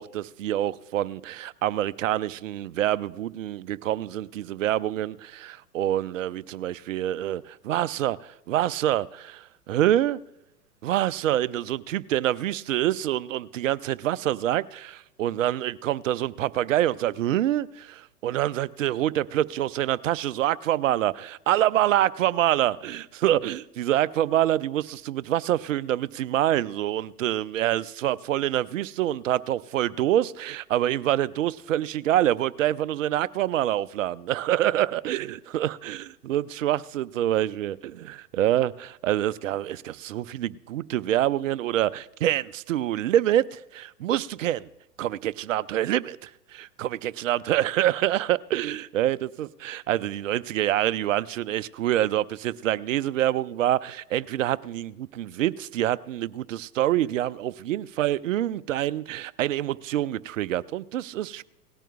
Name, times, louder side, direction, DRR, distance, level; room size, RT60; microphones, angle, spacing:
voice 1, 0.0-10.2 10.8-44.7 45.0-61.4, right 12 dB, 55° right, 0.5 m, -26 dB
18.5 x 13.5 x 2.4 m
figure-of-eight pair, 105°, 47 cm